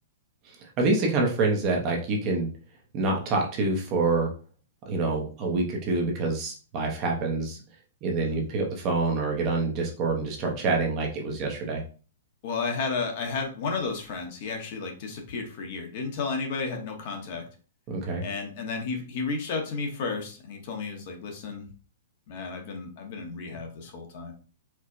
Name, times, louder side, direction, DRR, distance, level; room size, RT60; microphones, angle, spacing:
voice 1, 0.8-2.5 2.9-4.3 4.9-7.6 8.0-11.8 17.9-18.2, right 3 dB, 25° right, 0 dB, 0.6 m, -26 dB
voice 2, 12.4-17.4 18.2-21.6 22.3-24.3, left 4 dB, 35° left, 3 dB, 0.7 m, -32 dB
4.4 x 2.0 x 2.5 m, 0.37 s
hypercardioid pair, 175°, 0 cm